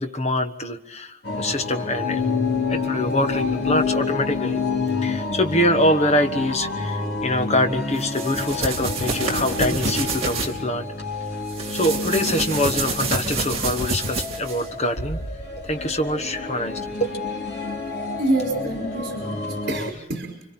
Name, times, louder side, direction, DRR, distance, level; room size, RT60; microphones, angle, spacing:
voice 1, 0.0-2.2 2.7-4.6 5.0-10.9 11.7-15.2 15.6-17.1, left 1 dB, 30° left, 6 dB, 1.3 m, -24 dB
sound 1, 1.2-19.9, left 2 dB, 50° left, 2.9 m, -30 dB
sound 2, 2.0-5.2, left 8 dB, 80° left, 1.0 m, -26 dB
sound 3, 8.0-10.5 11.5-14.7, right 3 dB, 30° right, 3.0 m, -27 dB
voice 2, 18.2-20.4, right 2 dB, 50° right, 2 dB, 5.4 m, -27 dB
30.0 x 24.5 x 4.4 m, 0.85 s
head